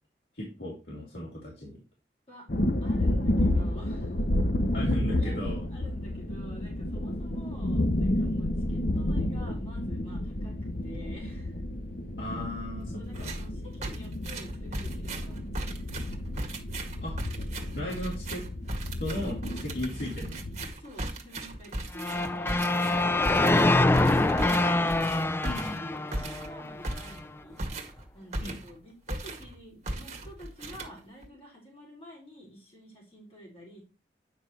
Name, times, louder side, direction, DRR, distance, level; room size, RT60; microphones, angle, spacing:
voice 1, 0.3-1.8 4.7-5.6 12.2-13.4 17.0-17.2 17.8-18.4 19.0-20.4 25.4-25.8 28.4-28.6, left 1 dB, 75° left, -4 dB, 3.3 m, -36 dB
sound 1, 2.5-20.7, left 1 dB, 55° left, 0.9 m, -31 dB
voice 2, 2.8-4.2 4.7-4.9 5.2-5.3 5.7-11.6 12.9-15.8 19.5-19.6 20.8-24.8 25.8-27.6 28.1-33.8, equal, 35° left, -4 dB, 4.9 m, -48 dB
sound 2, 13.1-13.5 13.8-28.8 29.1-29.6 29.9-31.3, right 1 dB, 40° right, 1.9 m, -37 dB
sound 3, 22.0-27.0, left 2 dB, 15° left, 0.4 m, -25 dB
9.4 x 6.0 x 3.2 m, 0.32 s
head